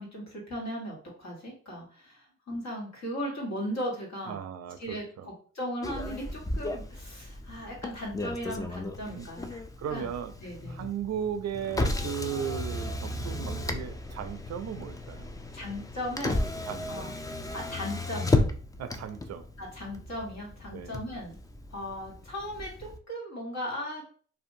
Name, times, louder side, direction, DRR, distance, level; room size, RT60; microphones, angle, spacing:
voice 1, 0.0-4.4 4.8-9.5 9.9-10.1 10.4-10.8 15.5-16.5 16.9-17.1 17.5-18.5 19.6-21.4 21.7-24.1, equal, 60° left, -3 dB, 1.4 m, -37 dB
voice 2, 4.3-5.3 9.0-9.3 9.5-10.3 10.7-15.3 16.7-17.2 18.8-19.4 20.7-21.0, right 8 dB, 60° right, 8 dB, 0.4 m, -36 dB
Motor vehicle (road), 5.8-23.0, left 2 dB, 10° left, 0.3 m, -34 dB
2.6 x 2.2 x 2.6 m, 0.43 s
supercardioid pair, 50°, 30 cm